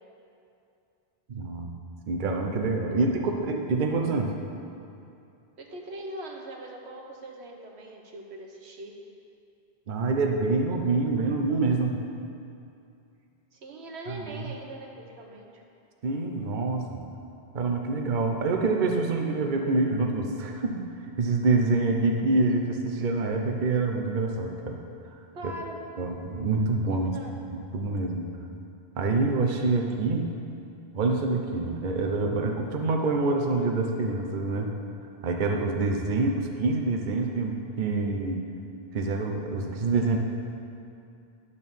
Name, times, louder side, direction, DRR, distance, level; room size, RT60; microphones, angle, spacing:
voice 1, 1.3-1.7 2.1-4.3 9.9-12.0 14.1-14.5 16.0-17.0 17.5-20.8 21.2-24.8 26.0-27.1 27.5-28.3 29.0-30.2 30.9-34.7 35.2-38.4 38.9-40.2, right 3 dB, 50° right, 2 dB, 0.8 m, -26 dB
voice 2, 2.9-3.4 5.6-9.0 13.5-15.6 25.3-25.8 26.9-27.4, right 1 dB, 85° right, 1 dB, 1.3 m, -41 dB
11.0 x 4.1 x 7.0 m, 2.6 s
omnidirectional pair, 1.1 m